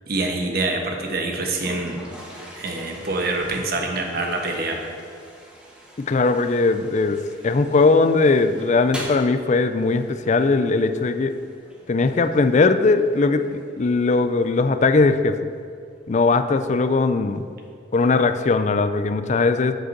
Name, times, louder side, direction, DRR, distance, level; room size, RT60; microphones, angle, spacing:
voice 1, 0.1-2.0 2.6-4.9, right 2 dB, 55° right, 2 dB, 1.2 m, -25 dB
Toilet flush, 1.3-18.4, equal, 5° right, 1.4 m, -45 dB
voice 2, 6.0-11.3 11.9-15.4 16.1-17.4 17.9-19.8, left 3 dB, 40° left, 10 dB, 0.4 m, -19 dB
8.0 x 6.2 x 6.6 m, 2.3 s
head